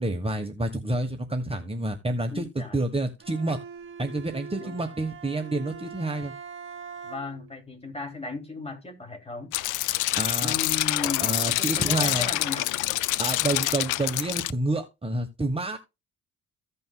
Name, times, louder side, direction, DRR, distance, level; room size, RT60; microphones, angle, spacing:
voice 1, 0.0-2.5 2.7-3.6 4.0-6.3 10.2-10.5 11.2-12.3 13.2-15.8, right 2 dB, 20° right, 1.4 m, -28 dB
voice 2, 2.3-2.8 4.6-4.7 7.0-9.5 10.4-12.7, left 3 dB, 20° left, 2.9 m, -36 dB
Bowed string instrument, 3.2-7.6, right 6 dB, 40° right, 2.1 m, -42 dB
sound 1, 9.5-14.5, left 17 dB, 85° left, 0.5 m, -26 dB
15.5 x 5.4 x 2.4 m
cardioid pair, 90°, 30 cm